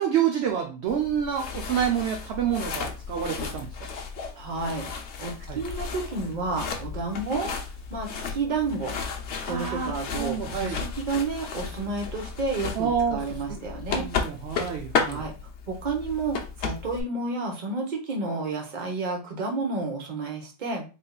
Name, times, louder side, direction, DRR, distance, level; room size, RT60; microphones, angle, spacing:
voice 1, 0.0-3.9 5.5-5.6 9.5-10.8 12.8-13.6 13.9-15.2, right 8 dB, 65° right, 3 dB, 0.7 m, -28 dB
sound 1, 0.9-17.0, left 5 dB, 60° left, 0.9 m, -34 dB
voice 2, 4.4-4.9 5.2-7.5 7.9-8.9 9.5-14.0 15.1-15.3 15.7-20.8, right 3 dB, 40° right, 2 dB, 1.0 m, -30 dB
3.9 x 3.6 x 2.2 m, 0.32 s
omnidirectional pair, 1.5 m